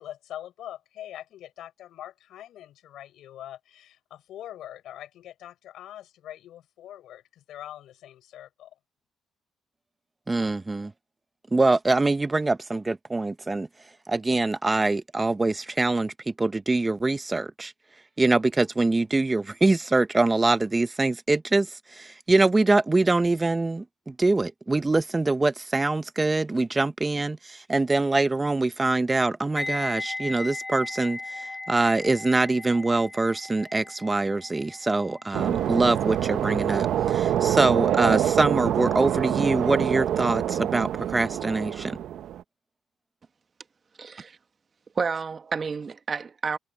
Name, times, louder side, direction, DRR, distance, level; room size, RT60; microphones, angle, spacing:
voice 1, 0.0-8.7, left 12 dB, 80° left, 7.0 m, -43 dB
voice 2, 10.3-10.9 11.5-13.7 14.1-17.7 18.2-42.0, right 2 dB, 20° right, 0.8 m, -24 dB
sound 1, 29.6-38.5 38.8-39.1, left 2 dB, 20° left, 3.0 m, -38 dB
sound 2, 35.3-42.4, right 10 dB, 75° right, 0.8 m, -26 dB
voice 3, 44.0-44.4 44.9-46.6, right 5 dB, 40° right, 1.4 m, -30 dB
cardioid pair, 90°, 0 cm